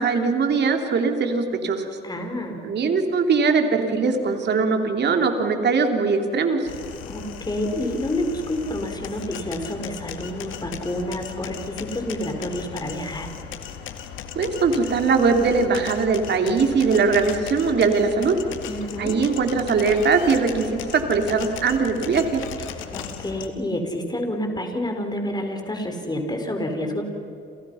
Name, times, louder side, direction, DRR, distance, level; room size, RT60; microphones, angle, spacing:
voice 1, 0.0-1.9 2.6-6.7 14.4-18.3 19.0-20.7 20.9-22.4, right 4 dB, 60° right, 4 dB, 3.6 m, -21 dB
voice 2, 2.0-2.6 7.1-13.3 18.7-19.2 22.9-27.0, left 1 dB, 20° left, 4 dB, 5.1 m, -29 dB
sound 1, 6.7-23.5, left 8 dB, 85° left, 2.2 m, -37 dB
29.5 x 28.5 x 5.9 m, 2.7 s
cardioid pair, 90°, 20 cm